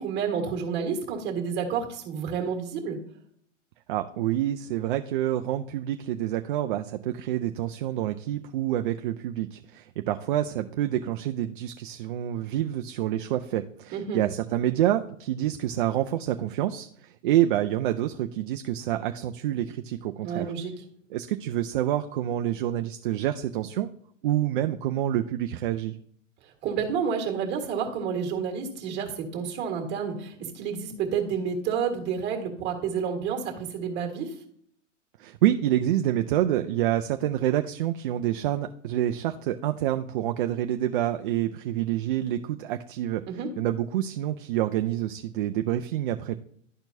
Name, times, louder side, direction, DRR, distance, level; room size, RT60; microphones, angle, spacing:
voice 1, 0.0-3.0 13.9-14.2 20.2-20.7 26.6-34.3 43.3-43.5, right 6 dB, 25° right, 2 dB, 1.7 m, -30 dB
voice 2, 3.9-20.5 21.1-23.9 24.2-26.0 35.2-43.2 43.6-46.4, right 12 dB, 45° right, 7 dB, 0.4 m, -27 dB
12.0 x 4.4 x 2.7 m, 0.66 s
hypercardioid pair, 120°, 38 cm